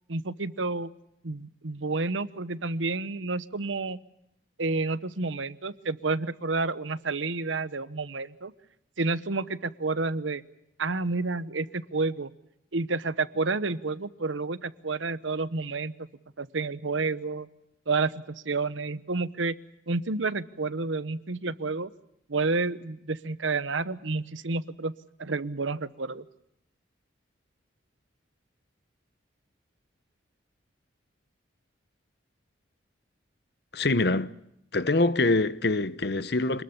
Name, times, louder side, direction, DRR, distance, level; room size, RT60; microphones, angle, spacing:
voice 1, 0.1-0.9 1.2-4.0 4.6-8.5 9.0-10.4 10.8-12.3 12.7-15.9 16.4-17.5 17.9-18.1 18.4-19.5 19.9-21.9 22.3-24.9 25.2-26.2, right 3 dB, 80° right, 1.0 m, -30 dB
voice 2, 33.7-34.3 34.7-36.6, left 2 dB, 55° left, 0.9 m, -24 dB
26.5 x 20.5 x 7.1 m
head